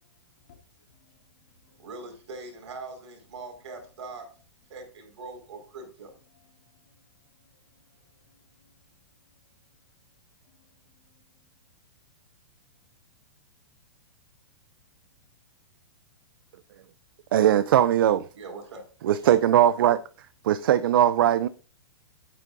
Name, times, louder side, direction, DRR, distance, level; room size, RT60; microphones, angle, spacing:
voice 1, 0.9-1.9 6.3-9.4 9.7-9.8 10.4-11.3, left 6 dB, 45° left, 2.8 m, -66 dB
voice 2, 1.8-4.3 4.7-6.1 18.3-18.8, right 3 dB, 80° right, 4.9 m, -41 dB
voice 3, 17.3-18.3 19.0-20.0 20.4-21.5, right 11 dB, 50° right, 0.4 m, -20 dB
12.5 x 9.2 x 2.6 m
hypercardioid pair, 170°, 15 cm